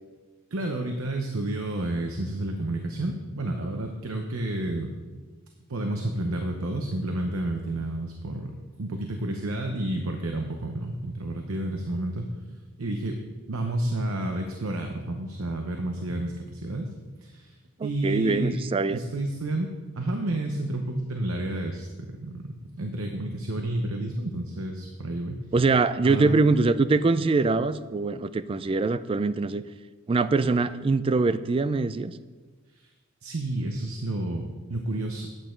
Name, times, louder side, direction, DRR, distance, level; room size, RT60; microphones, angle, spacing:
voice 1, 0.5-4.9 5.7-8.5 8.8-12.3 12.8-13.2 13.5-16.9 17.2-17.6 17.8-18.6 18.9-22.4 22.8-25.4 26.0-26.4 32.7-32.9 33.2-35.3, right 1 dB, 80° right, 3 dB, 0.8 m, -30 dB
voice 2, 17.8-19.0 25.5-29.6 30.1-32.1, right 3 dB, 25° right, 14 dB, 0.3 m, -23 dB
8.9 x 8.6 x 4.5 m, 1.3 s
head